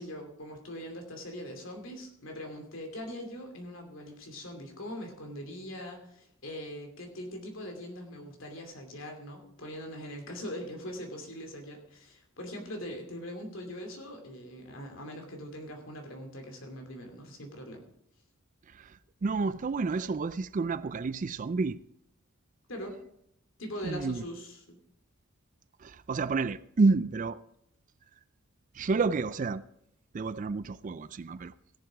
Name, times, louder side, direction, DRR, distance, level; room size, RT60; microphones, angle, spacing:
voice 1, 0.0-17.9 22.7-23.0 23.6-24.8, equal, 65° left, 2.7 m, -42 dB
voice 2, 19.2-21.8 23.8-24.3 25.8-27.4 28.8-29.6 30.1-31.5, right 4 dB, 35° right, 0.4 m, -29 dB
16.5 x 7.1 x 4.8 m
head